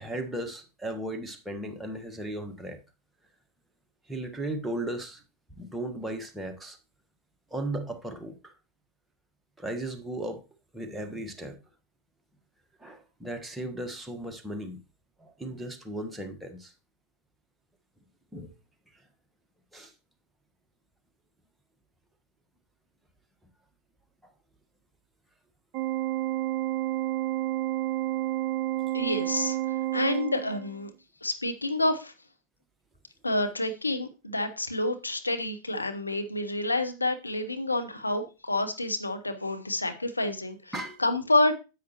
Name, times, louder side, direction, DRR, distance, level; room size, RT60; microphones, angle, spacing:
voice 1, 0.0-2.8 4.1-5.2 5.5-6.8 7.5-8.5 9.6-10.4 10.7-11.6 12.8-14.8 15.2-16.7 18.3-18.5 19.7-19.9 24.2-24.3 40.7-41.0, right 1 dB, 5° right, 1.3 m, -36 dB
Organ, 25.7-30.8, right 16 dB, 45° right, 0.5 m, -30 dB
voice 2, 28.9-29.6 29.9-30.9 31.2-32.1 33.2-40.7 41.0-41.6, left 2 dB, 80° left, 0.8 m, -28 dB
10.0 x 7.9 x 2.9 m
figure-of-eight pair, 90°, 0 cm